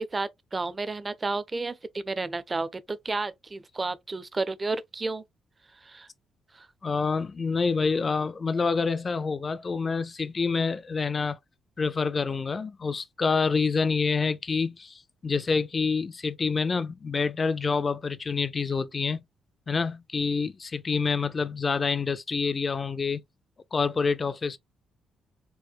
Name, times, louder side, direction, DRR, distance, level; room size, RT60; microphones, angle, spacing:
voice 1, 0.0-5.2 5.8-6.1 6.5-6.7, right 3 dB, 30° right, 0.5 m, -32 dB
voice 2, 6.8-11.4 11.8-19.2 19.7-23.2 23.7-24.6, left 4 dB, 40° left, 0.4 m, -27 dB
4.5 x 2.1 x 2.4 m
supercardioid pair, 70°, 0 cm